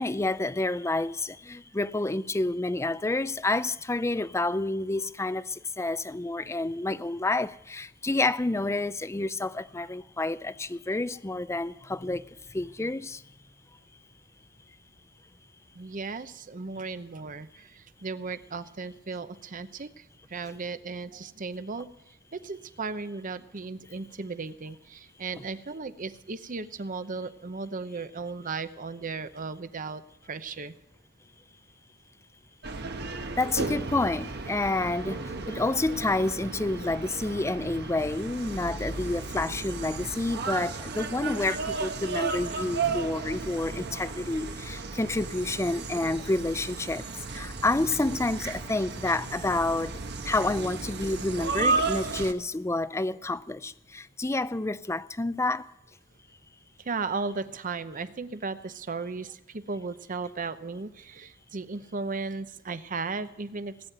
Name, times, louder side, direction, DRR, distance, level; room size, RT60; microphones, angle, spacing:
voice 1, 0.0-12.2 12.5-13.2 33.4-47.0 47.3-49.9 50.3-55.6, left 2 dB, 15° left, 0.5 m, -29 dB
voice 2, 15.7-21.9 22.3-30.0 30.3-30.7 56.8-63.7, right 4 dB, 45° right, 0.8 m, -36 dB
sound 1, 32.6-52.3, right 4 dB, 60° right, 1.2 m, -34 dB
19.0 x 9.2 x 7.9 m
head